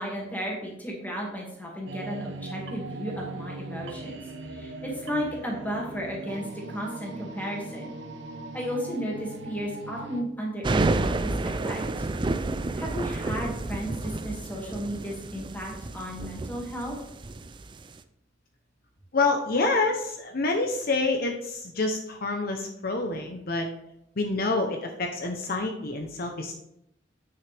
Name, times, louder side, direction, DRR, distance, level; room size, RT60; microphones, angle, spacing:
voice 1, 0.0-4.2 4.5-7.9 8.5-12.1 12.7-17.0, equal, 10° left, -2 dB, 2.1 m, -34 dB
sound 1, 1.9-10.2, right 2 dB, 85° right, 0.9 m, -39 dB
sound 2, 10.6-18.0, right 2 dB, 25° right, 0.4 m, -30 dB
voice 2, 19.1-23.7 24.2-26.5, left 3 dB, 55° left, 4 dB, 0.8 m, -27 dB
9.0 x 6.3 x 3.4 m, 0.80 s
head